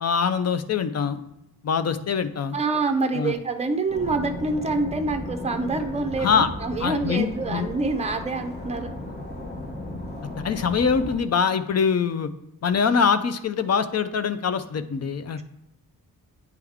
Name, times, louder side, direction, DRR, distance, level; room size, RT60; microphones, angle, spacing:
voice 1, 0.0-1.2 1.6-2.6 3.1-3.3 6.2-6.5 6.8-7.7 10.4-12.3 12.6-15.4, left 6 dB, 45° left, 12 dB, 0.4 m, -23 dB
voice 2, 2.5-8.9, right 3 dB, 20° right, 6 dB, 0.5 m, -26 dB
sound 1, 3.9-11.2, left 1 dB, 25° left, 0.9 m, -35 dB
9.3 x 3.4 x 3.5 m, 0.86 s
wide cardioid pair, 175°, 37 cm